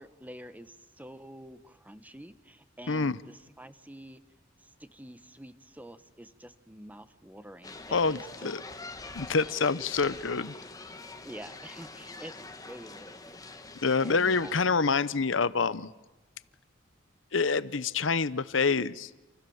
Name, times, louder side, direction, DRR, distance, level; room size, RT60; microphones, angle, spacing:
voice 1, 0.0-4.2 4.8-8.5 11.2-13.4 14.0-14.7, right 1 dB, 10° right, 12 dB, 1.3 m, -47 dB
voice 2, 2.9-3.2 7.9-8.6 9.1-10.5 13.8-15.9 17.3-19.1, left 4 dB, 80° left, 17 dB, 0.9 m, -27 dB
sound 1, 7.6-14.6, left 3 dB, 20° left, 1.7 m, -45 dB
28.5 x 28.0 x 7.3 m, 1.0 s
head